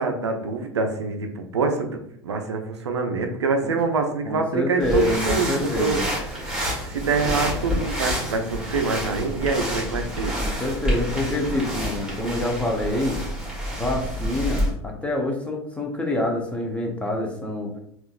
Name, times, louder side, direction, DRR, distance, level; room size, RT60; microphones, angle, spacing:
voice 1, 0.0-6.0 6.3-6.4 6.8-10.3, right 4 dB, 85° right, 5 dB, 0.4 m, -25 dB
voice 2, 4.3-6.0 10.4-13.2 13.7-17.7, left 1 dB, 10° left, 1 dB, 0.7 m, -26 dB
sound 1, 4.8-14.7, equal, 5° right, 1.2 m, -28 dB
3.7 x 2.4 x 2.4 m, 0.70 s
hypercardioid pair, 80°, 14 cm